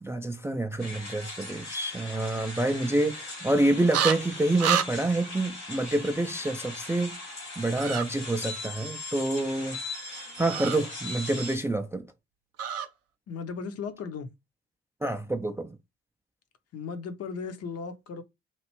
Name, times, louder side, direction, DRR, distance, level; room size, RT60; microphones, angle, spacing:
voice 1, 0.0-7.2 7.6-9.8 10.0-12.0 15.0-15.7, right 2 dB, 10° right, 0.4 m, -27 dB
sound 1, 0.8-11.6, left 2 dB, 85° left, 1.7 m, -39 dB
sound 2, 3.9-4.2 4.6-4.9 7.7-8.0 10.5-10.8 12.6-12.9, right 8 dB, 45° right, 0.6 m, -27 dB
voice 2, 13.3-14.3 16.7-18.2, left 5 dB, 45° left, 0.7 m, -36 dB
3.0 x 2.5 x 3.0 m
figure-of-eight pair, 45°, 33 cm